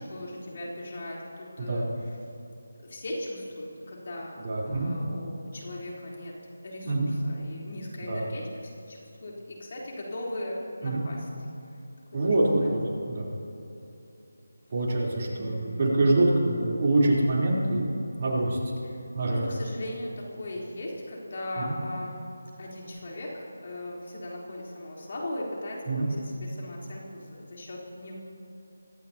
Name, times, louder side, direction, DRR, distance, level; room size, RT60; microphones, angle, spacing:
voice 1, 0.0-1.9 2.8-4.3 4.6-6.3 6.6-11.3 12.2-12.7 15.2-16.1 18.9-22.2 22.6-28.2, left 1 dB, 45° left, -3 dB, 3.8 m, -38 dB
voice 2, 1.6-1.9 4.4-4.9 6.8-7.1 8.1-8.3 10.8-11.0 12.1-12.8 13.1-13.3 14.7-17.9 18.2-18.6 19.1-19.5 21.6-21.8 25.9-26.1, right 2 dB, 40° right, -5 dB, 3.8 m, -25 dB
24.5 x 12.0 x 3.0 m, 2.9 s
figure-of-eight pair, 170°, 0 cm